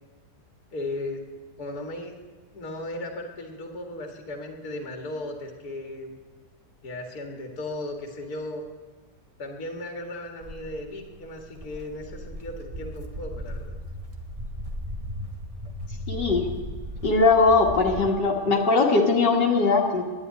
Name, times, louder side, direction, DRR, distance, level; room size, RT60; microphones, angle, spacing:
voice 1, 0.7-1.2 1.6-2.1 2.5-6.1 6.8-8.7 9.4-13.8, left 1 dB, 60° left, 2 dB, 2.3 m, -36 dB
Walk footsteps, 10.4-18.1, equal, 25° right, 1.1 m, -36 dB
voice 2, 16.1-16.5 17.0-20.0, left 3 dB, 75° left, -2 dB, 2.2 m, -20 dB
12.0 x 11.5 x 9.5 m, 1.4 s
omnidirectional pair, 1.9 m